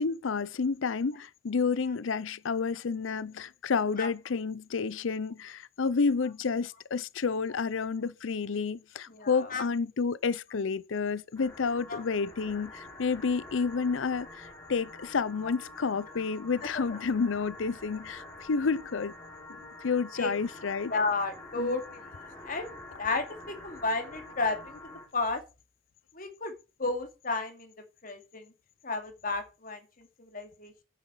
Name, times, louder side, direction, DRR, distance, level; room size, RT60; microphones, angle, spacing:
voice 1, 0.0-19.1 19.8-20.9 21.6-21.7, left 5 dB, 85° left, 0.6 m, -30 dB
voice 2, 9.1-9.6 11.9-12.0 16.7-16.8 20.1-20.3 20.9-21.8 22.4-25.4 26.1-26.5 26.8-27.7 28.0-28.5 28.8-30.8, left 3 dB, 45° left, 2.5 m, -33 dB
sound 1, 11.4-25.1, left 2 dB, 15° left, 5.7 m, -47 dB
9.9 x 7.6 x 5.5 m
head